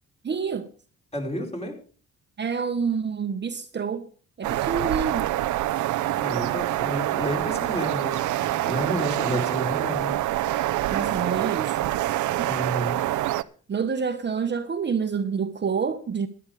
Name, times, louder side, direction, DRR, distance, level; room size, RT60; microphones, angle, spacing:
voice 1, 0.2-0.7 2.4-4.1 4.4-5.3 10.9-11.7 12.4-12.5 13.7-16.3, right 6 dB, 35° right, 1.2 m, -27 dB
voice 2, 1.1-1.7 6.2-10.1 12.5-13.0, equal, 20° left, 4.4 m, -31 dB
sound 1, 4.4-13.4, right 15 dB, 75° right, 0.7 m, -26 dB
13.5 x 11.0 x 5.0 m
cardioid pair, 90°, 30 cm